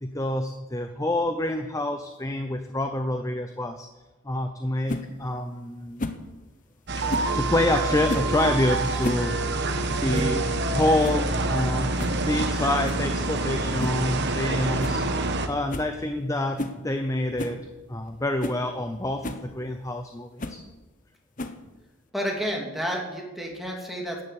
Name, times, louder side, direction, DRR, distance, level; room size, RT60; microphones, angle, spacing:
voice 1, 0.0-3.9 4.2-6.1 7.1-9.5 10.0-10.4 10.7-11.9 12.2-15.0 15.5-17.6 17.9-20.6, left 1 dB, 15° left, 7 dB, 0.7 m, -27 dB
sound 1, 4.9-5.1 6.0-6.3 7.1-7.4 8.1-8.4 8.9-9.3 9.6-9.7 10.1-10.4 10.7-10.8 11.0-11.3 12.0-12.2 12.8-13.1 13.8-14.1 14.4-14.5 14.8-15.0 15.3-15.4 15.7-15.9 16.6-16.8 17.4-17.6 18.1-18.2 18.4-18.6 19.2-19.5 20.4-20.6 21.4-21.7, left 2 dB, 35° left, 1.1 m, -33 dB
sound 2, 6.9-15.5, right 2 dB, 50° right, 1.4 m, -26 dB
voice 2, 22.1-24.2, equal, ahead, -1 dB, 2.9 m, -30 dB
13.5 x 10.0 x 8.6 m, 1.1 s
head